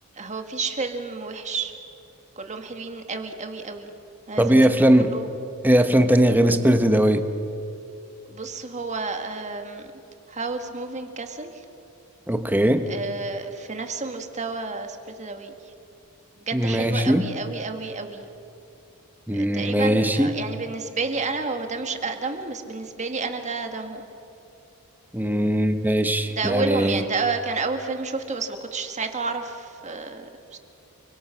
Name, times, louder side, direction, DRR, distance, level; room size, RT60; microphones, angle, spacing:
voice 1, 0.2-1.7 2.4-3.9 4.3-5.3 8.3-9.9 10.3-11.6 12.9-15.5 16.4-18.3 19.3-24.1 26.4-30.6, right 4 dB, 30° right, 6 dB, 1.9 m, -30 dB
voice 2, 4.4-5.1 5.6-7.2 12.3-12.9 16.5-17.3 19.3-20.4 25.1-27.0, right 1 dB, 10° right, 8 dB, 1.1 m, -19 dB
29.5 x 24.5 x 5.8 m, 2.7 s
head